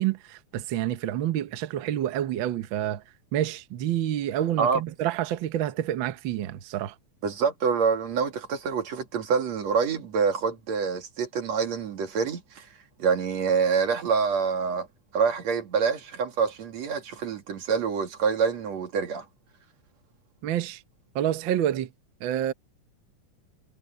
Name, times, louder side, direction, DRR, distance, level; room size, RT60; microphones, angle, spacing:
voice 1, 0.0-3.0 3.3-6.9 20.4-20.8 21.1-21.9 22.2-22.5, right 11 dB, 80° right, 1.1 m, -28 dB
voice 2, 7.2-12.7 13.0-14.9 15.1-19.2, right 5 dB, 60° right, 3.4 m, -26 dB
omnidirectional pair, 3.6 m